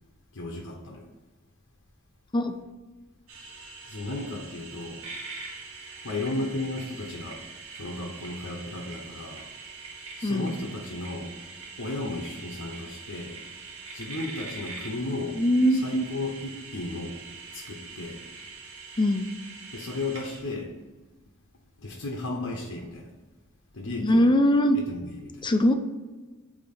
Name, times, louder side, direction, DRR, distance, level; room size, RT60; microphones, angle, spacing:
voice 1, 0.3-1.1 3.9-5.0 6.0-7.4 7.8-9.4 10.2-11.3 11.8-13.4 13.9-15.4 15.7-17.2 17.5-18.2 19.7-20.7 21.8-23.1 23.7-24.3 24.7-25.4, left 2 dB, 70° left, 0 dB, 0.9 m, -34 dB
sound 1, 3.3-20.4, right 4 dB, 65° right, 1.8 m, -43 dB
voice 2, 10.2-10.5 15.4-16.0 19.0-19.3 24.0-24.8 25.4-25.7, equal, 20° left, 7 dB, 0.5 m, -21 dB
8.4 x 2.9 x 4.3 m, 1.2 s
head